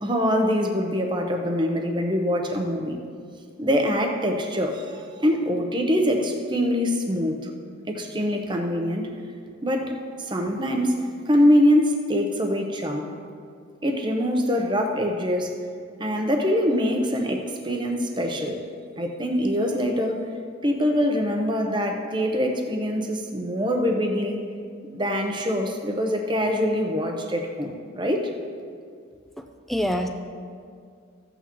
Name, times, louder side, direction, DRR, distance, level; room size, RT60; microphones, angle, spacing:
voice 1, 0.0-3.0 3.6-7.5 7.9-9.1 9.6-13.2 13.8-15.6 16.0-18.6 19.0-20.2 20.6-24.4 24.9-28.3, equal, 20° right, 3 dB, 0.8 m, -24 dB
voice 2, 29.4-30.1, equal, ahead, 4 dB, 0.5 m, -26 dB
15.0 x 8.3 x 3.0 m, 2.2 s
head